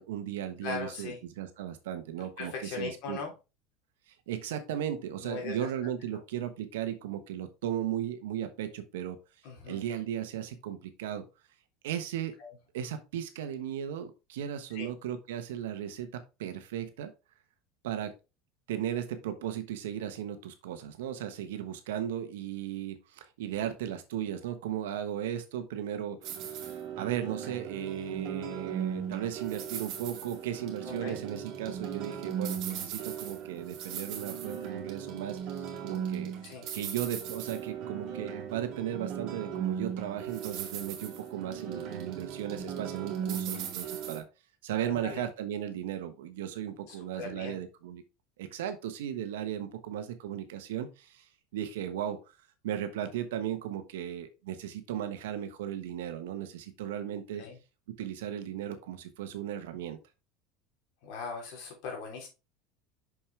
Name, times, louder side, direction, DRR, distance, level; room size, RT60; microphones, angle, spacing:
voice 1, 0.0-3.2 4.1-9.2 9.7-11.2 11.8-12.4 12.7-17.1 17.8-18.1 18.7-36.3 36.7-44.2 44.6-48.0 48.4-51.3 51.5-52.2 52.6-57.4 57.9-60.0, right 10 dB, 90° right, 9 dB, 1.2 m, -36 dB
voice 2, 0.6-1.2 2.2-3.3 5.2-5.7 9.4-9.8 12.4-12.5 14.7-14.9 30.8-31.2 36.4-36.7 44.8-45.3 46.9-47.6 57.4-57.6 61.0-62.3, left 5 dB, 70° left, 1 dB, 3.3 m, -39 dB
sound 1, 26.2-44.2, right 8 dB, 55° right, 2.2 m, -37 dB
6.3 x 5.7 x 3.4 m, 0.28 s
supercardioid pair, 105°, 0 cm